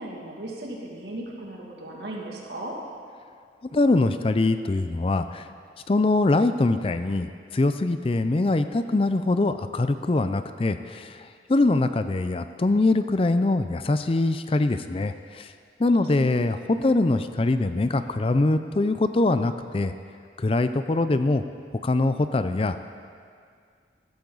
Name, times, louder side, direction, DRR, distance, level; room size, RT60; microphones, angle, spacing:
voice 1, 0.0-2.7 16.2-16.3 16.6-16.7, right 1 dB, 70° right, -2 dB, 2.3 m, -36 dB
voice 2, 3.7-5.5 5.9-15.5 15.8-19.9 20.4-21.4 21.8-22.9, left 2 dB, 30° left, 10 dB, 0.4 m, -23 dB
14.5 x 14.0 x 4.0 m, 2.2 s
head